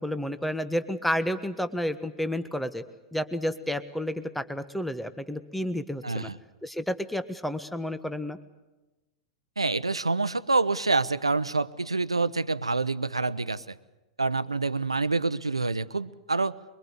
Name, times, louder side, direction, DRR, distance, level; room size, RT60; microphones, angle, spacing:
voice 1, 0.0-2.8 3.1-6.3 6.6-8.4, equal, 5° left, 12 dB, 1.4 m, -31 dB
voice 2, 6.0-6.4 9.6-13.7 14.2-16.6, right 3 dB, 90° right, 16 dB, 0.9 m, -27 dB
24.0 x 23.5 x 8.1 m, 1.1 s
figure-of-eight pair, 95°, 3 cm